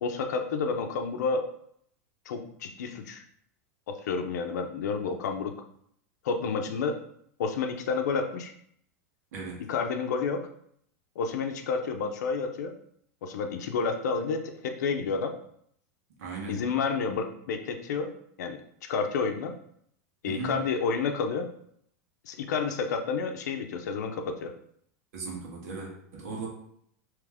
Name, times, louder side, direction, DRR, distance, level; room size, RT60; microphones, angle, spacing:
voice 1, 0.0-1.5 2.3-3.2 3.9-5.5 6.2-7.0 7.4-8.5 9.7-10.4 11.2-12.7 13.2-15.3 16.5-18.1 18.4-19.5 20.2-21.5 22.2-24.5, left 5 dB, 85° left, 5 dB, 0.6 m, -30 dB
voice 2, 9.3-9.7 16.2-16.7 20.2-20.6 25.1-26.5, right 4 dB, 65° right, -2 dB, 1.4 m, -37 dB
3.4 x 3.1 x 3.6 m, 0.67 s
supercardioid pair, 165°, 9 cm